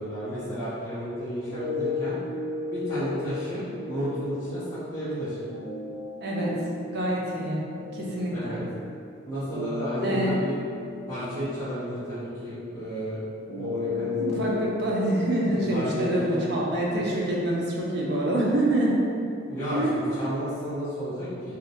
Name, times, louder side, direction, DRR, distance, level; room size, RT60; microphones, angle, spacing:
voice 1, 0.0-2.2 2.7-5.4 8.3-8.6 9.3-10.6 11.1-13.2 13.5-14.5 15.5-16.5 19.5-21.5, equal, 15° left, -15 dB, 0.7 m, -32 dB
sound 1, 1.5-17.5, left 3 dB, 80° left, 1.0 m, -36 dB
voice 2, 6.2-6.5 6.9-7.6 7.9-8.6 10.0-10.4 14.1-19.0 19.7-19.9, right 1 dB, 55° right, -4 dB, 0.5 m, -26 dB
2.6 x 2.1 x 3.9 m, 2.5 s
head